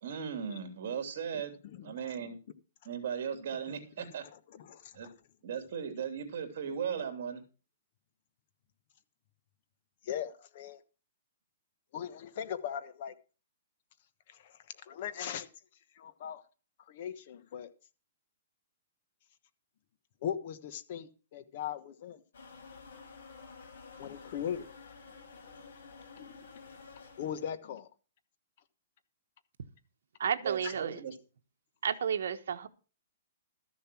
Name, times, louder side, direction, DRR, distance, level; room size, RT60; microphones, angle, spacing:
voice 1, 0.0-1.5 1.8-2.4 2.8-4.2 4.9-5.1 5.4-7.4 30.4-31.1, right 7 dB, 50° right, 2.9 m, -37 dB
voice 2, 1.6-2.1 3.7-5.1 10.0-10.8 11.9-13.1 14.3-15.5 15.9-16.4 16.8-17.7 20.2-22.2 24.0-24.7 26.2-26.4 27.2-27.9 30.6-30.7, left 9 dB, 45° left, 1.1 m, -40 dB
sound 1, 22.3-27.5, left 4 dB, 70° left, 5.5 m, -51 dB
voice 3, 30.2-31.0 31.8-32.7, right 7 dB, 75° right, 1.2 m, -32 dB
13.5 x 7.0 x 6.0 m
hypercardioid pair, 165°, 0 cm